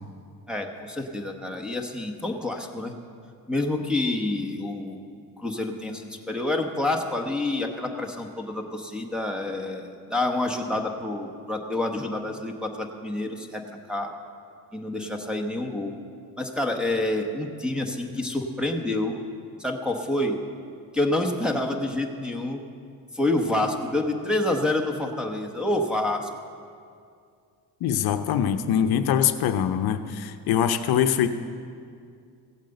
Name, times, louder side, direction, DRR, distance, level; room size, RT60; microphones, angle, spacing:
voice 1, 0.5-2.9 3.5-5.0 5.4-13.6 13.9-14.1 14.7-16.0 16.4-19.1 19.6-20.4 20.9-22.6 23.1-26.3, left 2 dB, ahead, 0 dB, 0.9 m, -28 dB
voice 2, 27.8-31.3, left 9 dB, 70° left, 9 dB, 0.8 m, -23 dB
15.5 x 9.0 x 7.9 m, 2.3 s
cardioid pair, 165°, 39 cm